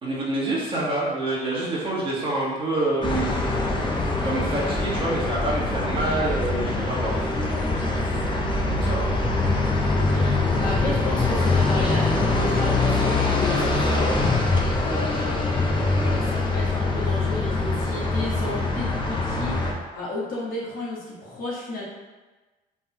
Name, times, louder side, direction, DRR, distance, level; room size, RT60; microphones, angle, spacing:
voice 1, 0.0-3.3 4.2-8.1 8.7-9.1, right 2 dB, 30° right, -7 dB, 1.5 m, -27 dB
sound 1, 3.0-19.7, left 2 dB, 30° left, 0.7 m, -23 dB
voice 2, 9.9-10.3 10.6-14.3 14.8-19.6 19.9-21.8, left 1 dB, 60° left, -6 dB, 1.4 m, -33 dB
3.8 x 3.6 x 3.0 m, 1.2 s
cardioid pair, 110°, 17 cm